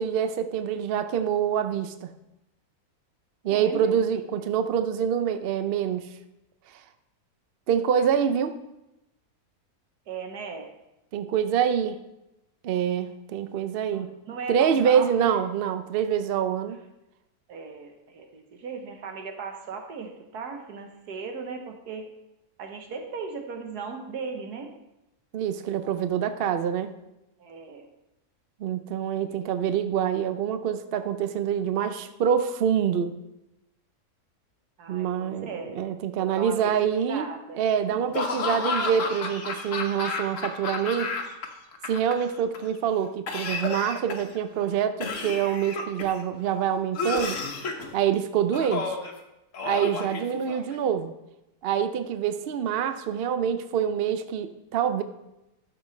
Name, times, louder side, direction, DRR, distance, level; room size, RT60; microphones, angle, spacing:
voice 1, 0.0-2.1 3.4-6.1 7.7-8.5 11.1-12.0 12.6-14.1 14.5-16.8 25.3-26.9 28.6-33.1 34.9-41.1 41.9-47.4 47.9-49.0 49.6-51.1 51.6-55.0, right 8 dB, 65° right, 10 dB, 0.5 m, -26 dB
voice 2, 3.5-3.9 10.1-10.7 13.9-15.4 17.5-22.1 22.6-24.7 27.4-27.9 29.3-29.5 34.8-35.8 36.2-36.7 37.1-37.6 37.9-38.0 49.8-50.4, right 5 dB, 85° right, 4 dB, 1.6 m, -37 dB
Laughter / Cough, 38.1-41.5 41.7-42.6 43.3-44.4 45.0-46.2 46.9-47.9 48.5-49.1 49.5-50.8, left 4 dB, 55° left, 1.3 m, -31 dB
11.5 x 6.7 x 3.2 m, 0.92 s
omnidirectional pair, 1.6 m